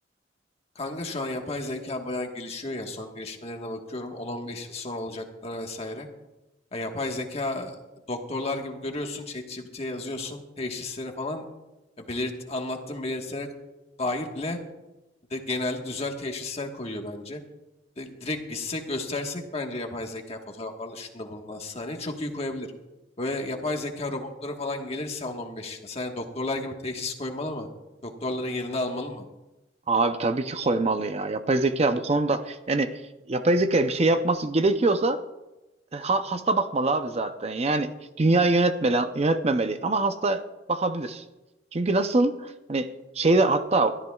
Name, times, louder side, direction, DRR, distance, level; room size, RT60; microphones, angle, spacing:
voice 1, 0.7-6.1 6.7-7.8 8.1-11.5 12.0-13.5 14.0-14.6 15.3-17.4 18.0-22.7 23.2-27.7 28.0-29.2, left 2 dB, 35° left, 3 dB, 1.4 m, -32 dB
voice 2, 29.9-33.0 33.3-35.2 35.9-37.9 38.2-40.4 40.7-41.2 41.7-42.9 43.1-44.0, right 2 dB, 35° right, 9 dB, 0.6 m, -23 dB
21.5 x 13.0 x 2.4 m, 1.0 s
head